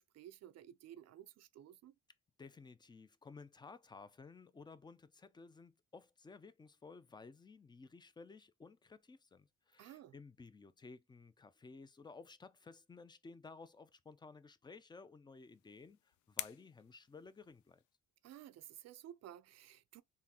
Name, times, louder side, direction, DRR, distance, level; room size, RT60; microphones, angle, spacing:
voice 1, 0.0-1.9 9.8-10.1 18.2-20.0, right 11 dB, 55° right, 0.5 m, -54 dB
voice 2, 2.4-17.8, left 4 dB, 15° left, 0.4 m, -56 dB
sound 1, 15.3-18.0, left 13 dB, 75° left, 0.5 m, -50 dB
3.7 x 2.6 x 2.8 m
cardioid pair, 90°, 30 cm